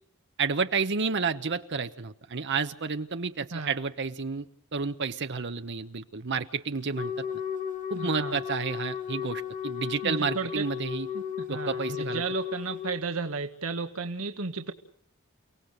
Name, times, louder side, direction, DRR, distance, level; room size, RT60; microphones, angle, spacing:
voice 1, 0.4-7.3 7.9-11.1 11.5-12.2, right 5 dB, 55° right, 8 dB, 0.9 m, -30 dB
Wind instrument woodwind instrument, 6.9-13.0, left 8 dB, 35° left, 1.9 m, -35 dB
voice 2, 7.9-8.4 10.0-10.6 11.1-11.2 11.5-14.7, right 4 dB, 90° right, 5 dB, 1.5 m, -33 dB
30.0 x 18.0 x 6.6 m, 0.63 s
head